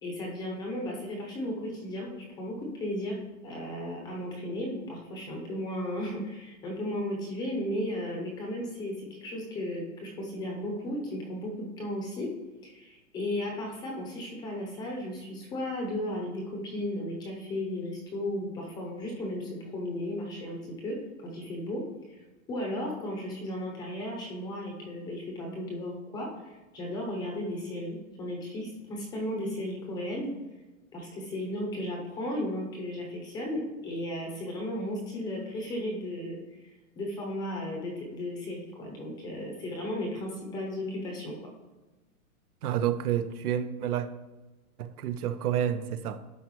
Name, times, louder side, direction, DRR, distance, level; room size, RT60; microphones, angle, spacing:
voice 1, 0.0-3.2 3.4-12.3 12.6-21.0 21.2-21.8 22.1-22.2 22.5-30.3 30.9-41.4, left 1 dB, 10° left, 0 dB, 0.7 m, -35 dB
voice 2, 42.6-44.1 44.8-46.2, right 10 dB, 85° right, 12 dB, 0.8 m, -29 dB
11.5 x 4.6 x 3.1 m, 1.1 s
hypercardioid pair, 160°, 44 cm